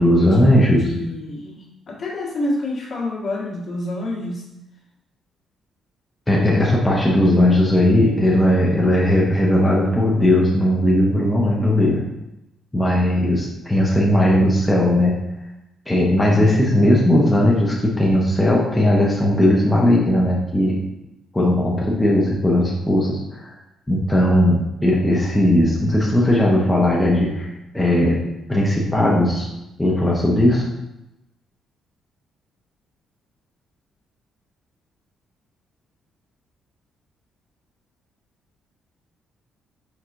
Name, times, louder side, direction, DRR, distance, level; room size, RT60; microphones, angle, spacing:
voice 1, 0.0-0.9 6.3-12.0 12.7-15.2 15.9-20.8 21.3-23.5 23.9-28.2 28.5-29.5 29.8-30.6, left 1 dB, 10° left, -4 dB, 0.8 m, -17 dB
voice 2, 0.8-4.4 16.3-16.5, left 1 dB, 55° left, -5 dB, 1.5 m, -28 dB
4.5 x 3.9 x 2.5 m, 0.91 s
cardioid pair, 90°, 0 cm